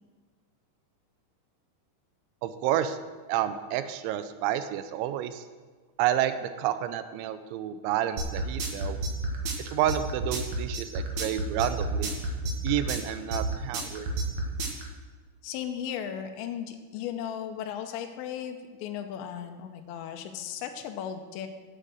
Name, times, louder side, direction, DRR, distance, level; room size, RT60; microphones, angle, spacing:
voice 1, 2.4-3.0 3.3-5.4 6.0-9.0 9.7-12.1 12.6-14.1, right 11 dB, 90° right, 11 dB, 3.0 m, -29 dB
sound 1, 8.2-14.8, right 2 dB, 55° right, 2.3 m, -30 dB
voice 2, 15.4-21.5, left 9 dB, 80° left, 4 dB, 3.0 m, -36 dB
10.5 x 9.1 x 7.8 m, 1.4 s
omnidirectional pair, 5.2 m